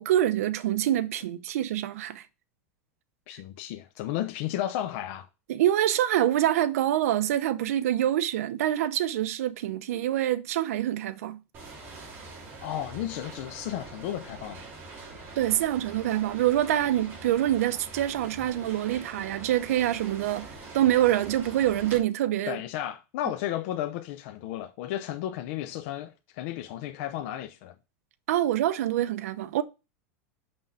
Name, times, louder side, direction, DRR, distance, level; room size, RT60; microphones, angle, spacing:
voice 1, 0.0-2.3 5.5-11.4 15.4-22.6 28.3-29.6, right 12 dB, 85° right, 0.7 m, -26 dB
voice 2, 3.3-5.3 12.6-14.7 22.5-27.7, left 12 dB, 55° left, 0.7 m, -33 dB
sound 1, 11.5-22.0, right 3 dB, 25° right, 2.8 m, -44 dB
6.1 x 5.7 x 4.9 m
supercardioid pair, 155°, 8 cm